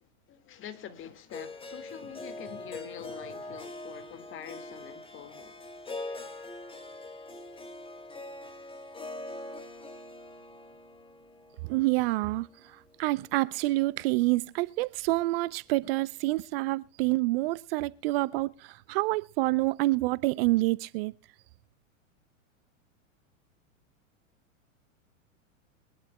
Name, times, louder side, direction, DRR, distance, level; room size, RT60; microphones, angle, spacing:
voice 1, 0.0-5.6, left 9 dB, 30° left, 1.9 m, -45 dB
Harp, 1.3-13.5, left 2 dB, 15° left, 2.5 m, -43 dB
voice 2, 11.6-21.1, right 20 dB, 50° right, 0.6 m, -28 dB
23.5 x 11.5 x 2.2 m
hypercardioid pair, 115°, 39 cm